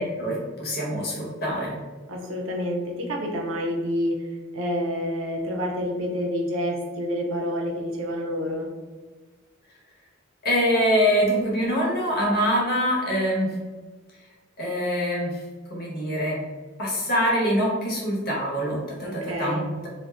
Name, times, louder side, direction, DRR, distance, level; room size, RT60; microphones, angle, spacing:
voice 1, 0.0-1.7 10.4-13.5 14.6-15.4 15.7-16.4 16.8-19.9, equal, 50° left, -4 dB, 0.9 m, -24 dB
voice 2, 2.1-8.7 19.0-19.7, equal, 75° right, 0 dB, 0.6 m, -28 dB
2.5 x 2.2 x 3.3 m, 1.3 s
head